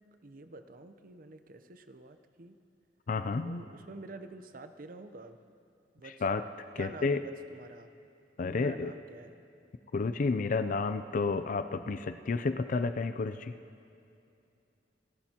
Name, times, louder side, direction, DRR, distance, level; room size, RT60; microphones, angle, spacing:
voice 1, 0.2-2.6 3.4-5.4 5.9-6.2 6.8-7.9 8.5-9.4, right 3 dB, 50° right, 9 dB, 0.7 m, -48 dB
voice 2, 3.1-3.6 6.0-6.4 6.8-7.2 8.4-8.9 9.9-13.5, left 4 dB, 50° left, 11 dB, 0.4 m, -31 dB
27.5 x 13.5 x 2.9 m, 2.6 s
head